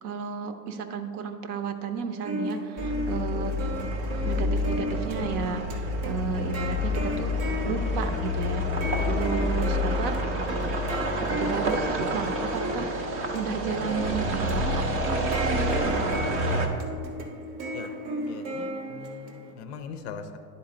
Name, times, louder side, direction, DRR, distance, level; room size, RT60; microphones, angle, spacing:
voice 1, 0.0-3.5 4.2-7.3 7.7-8.6 9.0-10.2 11.1-16.2, right 6 dB, 65° right, 8 dB, 0.8 m, -33 dB
sound 1, 2.2-19.5, right 1 dB, 85° right, 1.2 m, -35 dB
sound 2, 2.8-16.7, left 1 dB, 25° right, 0.4 m, -28 dB
voice 2, 18.3-20.4, left 6 dB, 45° left, 8 dB, 0.4 m, -41 dB
11.0 x 4.1 x 3.8 m, 2.3 s
supercardioid pair, 150°, 50 cm